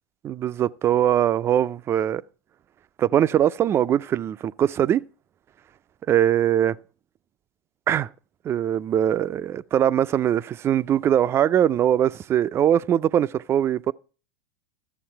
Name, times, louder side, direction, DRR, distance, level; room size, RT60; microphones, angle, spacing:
voice 1, 0.2-2.2 3.0-5.0 6.1-6.8 7.9-8.1 8.4-13.9, right 10 dB, 30° right, 0.4 m, -21 dB
13.5 x 7.1 x 4.5 m
hypercardioid pair, 105°, 9 cm